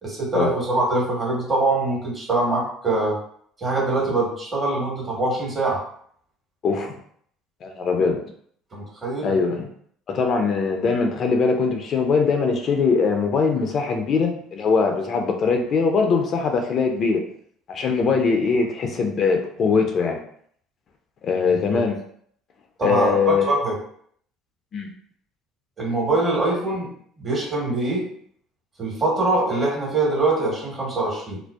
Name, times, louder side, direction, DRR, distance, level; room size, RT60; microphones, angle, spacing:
voice 1, 0.0-3.2 3.6-5.8 8.7-9.4 21.5-21.8 22.8-23.7 25.8-26.9 27.2-28.1 28.8-31.4, right 2 dB, 35° right, -3 dB, 1.3 m, -23 dB
voice 2, 6.6-6.9 7.6-8.2 9.2-9.7 10.1-17.2 17.7-20.2 21.2-22.0 22.8-23.6 24.7-24.9, left 5 dB, 45° left, 3 dB, 0.4 m, -21 dB
2.5 x 2.1 x 2.3 m, 0.62 s
hypercardioid pair, 65°, 0 cm